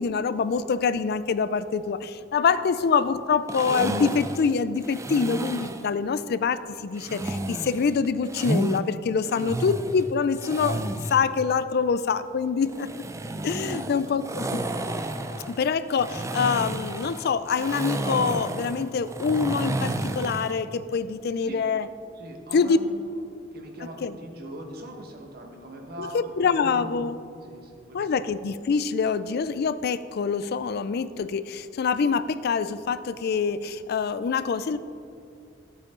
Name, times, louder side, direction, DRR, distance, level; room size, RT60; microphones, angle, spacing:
voice 1, 0.0-12.9 13.4-14.6 15.5-21.9 22.5-22.8 24.0-24.1 26.0-27.2 27.9-34.8, left 5 dB, 55° left, 14 dB, 0.4 m, -25 dB
sound 1, 3.5-5.9 7.0-8.8 9.2-11.2 12.7-20.6, right 1 dB, 15° right, 0.5 m, -31 dB
voice 2, 13.6-14.2 15.0-15.4 21.4-21.6 22.1-23.2 23.5-28.1, right 1 dB, 55° right, 2 dB, 1.4 m, -42 dB
13.5 x 8.5 x 3.8 m, 2.5 s
head